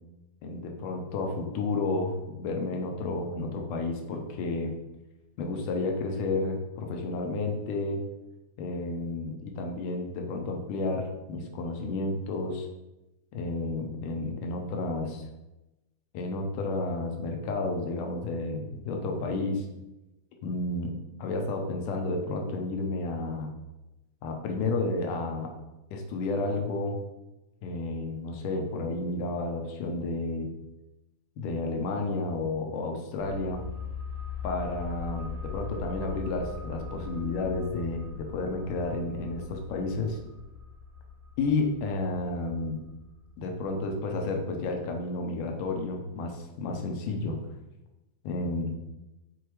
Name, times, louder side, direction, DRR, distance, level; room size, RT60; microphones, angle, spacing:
voice 1, 0.4-4.7 5.4-8.0 8.6-12.7 13.3-15.3 16.1-19.7 20.4-20.9 21.2-23.5 24.2-25.5 25.9-27.0 27.6-30.5 31.4-33.7 34.4-40.2 41.4-42.8 43.4-47.4 48.2-48.8, left 2 dB, 80° left, 3 dB, 2.5 m, -31 dB
sound 1, 33.2-44.6 44.8-44.9, left 4 dB, 55° right, 1.9 m, -41 dB
6.7 x 4.6 x 4.6 m, 0.98 s
omnidirectional pair, 3.7 m